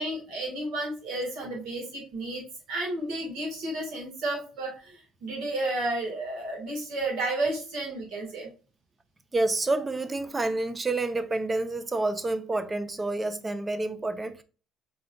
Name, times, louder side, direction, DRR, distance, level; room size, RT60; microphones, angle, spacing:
voice 1, 0.0-2.4 2.7-8.5, right 2 dB, 70° right, 2.0 m, -32 dB
voice 2, 9.3-14.4, right 2 dB, 25° right, 0.6 m, -28 dB
3.8 x 3.6 x 2.3 m
hypercardioid pair, 60°, 0 cm